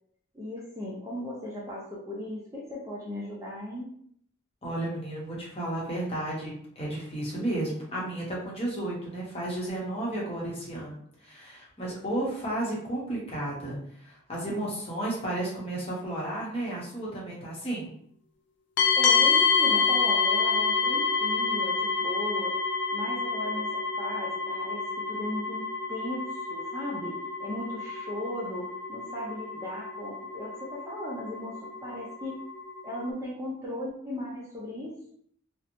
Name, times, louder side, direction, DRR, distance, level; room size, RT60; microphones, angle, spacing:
voice 1, 0.3-3.9 19.0-22.6 22.9-32.4 32.8-35.1, left 1 dB, 15° right, -6 dB, 0.4 m, -37 dB
voice 2, 4.6-17.9, right 1 dB, 30° left, -5 dB, 0.8 m, -33 dB
sound 1, 18.8-33.1, left 5 dB, 60° left, 0.4 m, -28 dB
2.9 x 2.0 x 2.5 m, 0.65 s
head